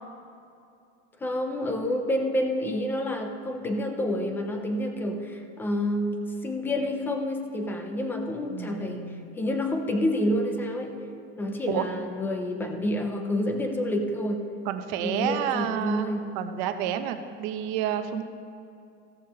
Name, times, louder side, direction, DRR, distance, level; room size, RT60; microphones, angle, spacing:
voice 1, 1.2-9.1 9.4-11.0 11.4-14.5 15.0-16.3, left 1 dB, 5° left, 4 dB, 0.3 m, -28 dB
voice 2, 8.5-9.3 11.7-11.9 14.7-16.1 16.3-18.2, right 10 dB, 40° right, 8 dB, 0.7 m, -30 dB
15.0 x 13.0 x 2.9 m, 2.5 s
supercardioid pair, 160°, 33 cm